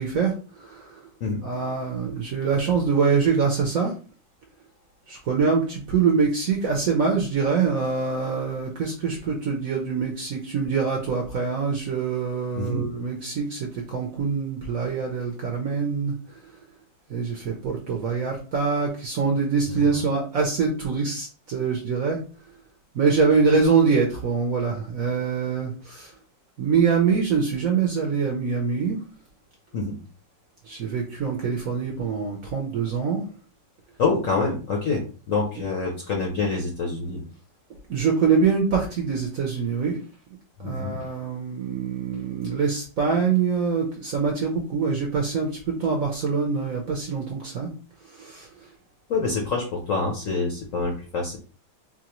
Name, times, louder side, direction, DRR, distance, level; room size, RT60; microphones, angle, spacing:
voice 1, 0.0-1.1 1.4-3.9 5.1-16.4 17.1-22.2 22.9-26.1 26.6-29.0 30.6-33.3 37.9-40.0 40.6-47.7 48.0-48.5, right 5 dB, 65° right, 0 dB, 0.9 m, -24 dB
voice 2, 12.6-12.9 19.8-20.1 29.7-30.0 34.0-35.0 35.3-37.2 40.6-41.0 49.1-51.4, left 4 dB, 60° left, 0 dB, 0.8 m, -26 dB
4.1 x 2.5 x 3.0 m, 0.37 s
omnidirectional pair, 2.1 m